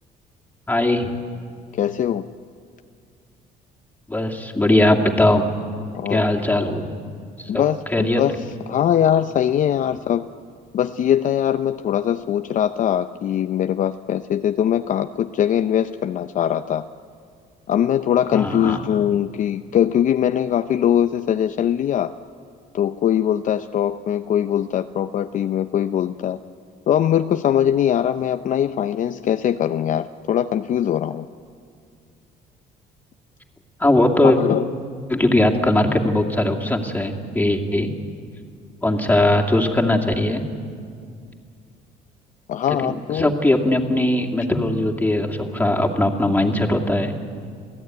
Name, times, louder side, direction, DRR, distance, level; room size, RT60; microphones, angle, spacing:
voice 1, 0.7-1.2 4.1-5.4 6.1-6.9 7.4-7.6 7.9-8.2 18.3-18.8 33.8-34.4 35.1-37.9 38.8-40.4 42.7-47.2, left 1 dB, 10° left, 1 dB, 2.5 m, -20 dB
voice 2, 1.7-2.3 5.9-6.2 7.5-10.3 10.7-16.8 17.7-22.1 22.7-26.4 26.9-31.3 34.2-34.7 42.5-43.3, left 10 dB, 50° left, 9 dB, 0.6 m, -21 dB
28.0 x 16.5 x 9.3 m, 2.3 s
cardioid pair, 110°, 17 cm